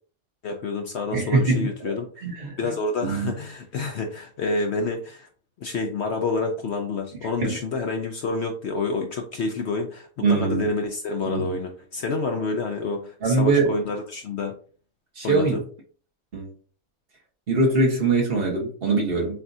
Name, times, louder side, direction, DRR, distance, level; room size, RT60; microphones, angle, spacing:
voice 1, 0.4-2.1 2.6-5.3 5.6-14.5 15.2-15.6, left 3 dB, 65° left, 0.8 m, -28 dB
voice 2, 1.1-1.9 2.2-2.7 3.0-3.3 7.4-7.6 10.2-10.7 11.2-11.6 13.2-13.7 15.2-15.6 16.3-16.5 17.5-19.4, right 3 dB, 45° right, 1.3 m, -22 dB
7.0 x 2.4 x 2.6 m
omnidirectional pair, 1.5 m